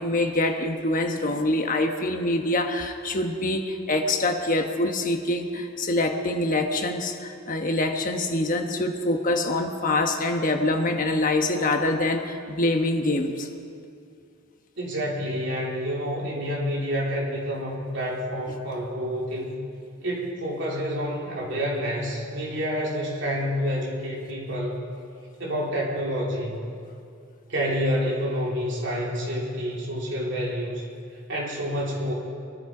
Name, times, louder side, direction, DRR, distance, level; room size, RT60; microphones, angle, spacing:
voice 1, 0.0-13.5, left 2 dB, 40° left, 4 dB, 1.1 m, -25 dB
voice 2, 14.8-19.6 20.0-24.8 25.4-26.6 27.5-30.8 31.3-32.1, equal, 60° right, -4 dB, 3.4 m, -28 dB
23.5 x 12.5 x 4.9 m, 2.4 s
head